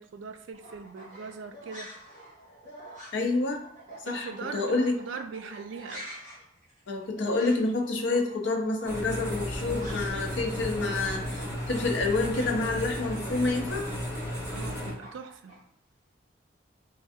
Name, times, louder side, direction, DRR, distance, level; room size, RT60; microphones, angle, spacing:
voice 1, 0.0-1.9 4.1-6.1 14.5-15.6, right 5 dB, 75° right, 8 dB, 0.3 m, -41 dB
sound 1, 0.5-10.3 10.5-15.6, right 1 dB, 40° right, 1.1 m, -47 dB
voice 2, 3.1-3.6 4.0-5.0 6.9-13.9, left 3 dB, 70° left, 3 dB, 0.5 m, -28 dB
sound 2, 8.8-14.9, equal, 15° right, 0.8 m, -34 dB
3.2 x 2.3 x 2.6 m, 0.68 s
head